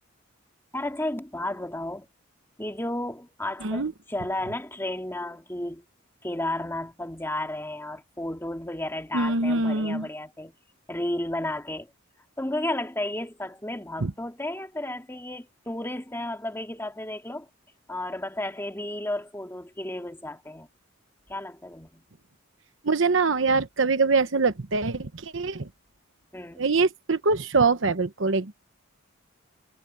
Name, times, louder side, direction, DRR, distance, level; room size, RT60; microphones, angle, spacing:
voice 1, 0.7-2.1 2.6-5.8 6.2-10.5 10.9-11.9 12.4-17.5 17.9-20.7 21.3-22.1 26.3-26.7, left 1 dB, 10° left, 2.4 m, -33 dB
voice 2, 9.1-10.1 14.0-14.1 22.8-25.7 26.6-28.5, right 4 dB, 65° right, 1.0 m, -24 dB
head